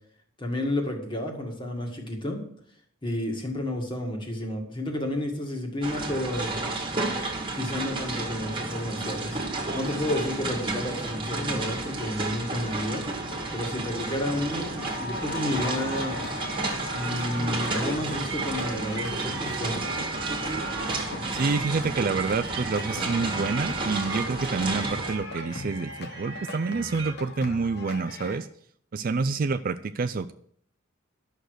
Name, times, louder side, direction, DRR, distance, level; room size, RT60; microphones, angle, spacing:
voice 1, 0.4-2.4 3.0-6.5 7.5-9.4 9.7-13.1 13.5-16.3 16.9-19.8, left 1 dB, 25° left, 2 dB, 1.9 m, -31 dB
sound 1, 5.8-25.1, right 2 dB, 25° right, 1.8 m, -32 dB
sound 2, 13.3-13.7 14.1-28.4, left 3 dB, 50° left, 1.3 m, -40 dB
sound 3, 16.1-27.1, right 5 dB, 65° right, 1.3 m, -39 dB
voice 2, 21.3-28.5 28.9-30.3, right 4 dB, 40° right, 11 dB, 0.4 m, -28 dB
11.5 x 6.6 x 6.4 m, 0.62 s
head